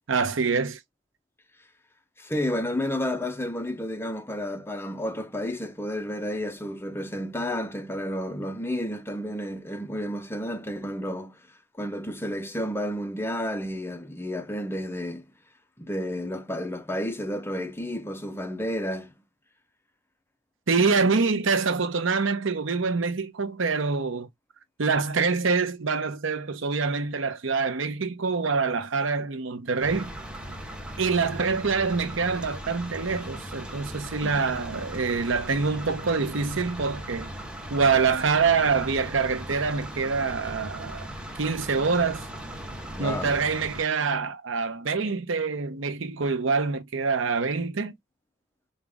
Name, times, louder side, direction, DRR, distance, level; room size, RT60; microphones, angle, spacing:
voice 1, 0.1-0.8 20.7-24.3 24.8-30.1 31.0-37.3 37.7-41.1 41.4-42.2 43.0-47.9, right 4 dB, 70° right, 0.8 m, -25 dB
voice 2, 2.2-11.4 11.8-15.3 15.8-19.1 34.2-34.4 42.9-43.4, left 1 dB, 10° left, 0.7 m, -31 dB
sound 1, 29.8-43.8, right 1 dB, 5° right, 1.0 m, -38 dB
5.1 x 2.5 x 3.5 m
head